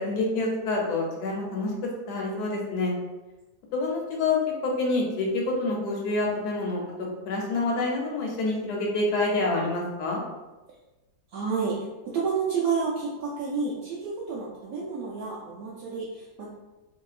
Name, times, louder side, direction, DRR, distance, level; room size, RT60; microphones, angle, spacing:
voice 1, 0.0-2.9 3.7-6.8 7.2-10.2, left 2 dB, 65° left, -2 dB, 1.2 m, -27 dB
voice 2, 11.3-16.5, right 5 dB, 75° right, -6 dB, 0.8 m, -30 dB
2.9 x 2.7 x 2.4 m, 1.1 s
omnidirectional pair, 2.0 m